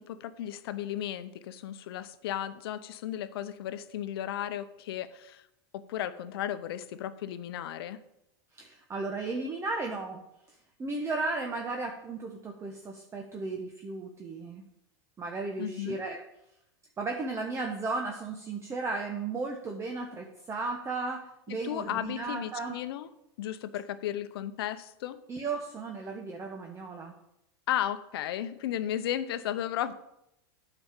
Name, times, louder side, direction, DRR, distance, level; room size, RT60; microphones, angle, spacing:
voice 1, 0.0-5.4 5.7-8.0 15.6-16.0 21.5-23.1 23.4-25.2 27.7-29.9, left 11 dB, 75° left, 13 dB, 0.8 m, -34 dB
voice 2, 8.5-14.7 15.2-16.2 17.0-22.8 25.3-27.1, right 3 dB, 20° right, 3 dB, 1.0 m, -35 dB
8.9 x 5.1 x 7.2 m, 0.83 s
hypercardioid pair, 120°, 13 cm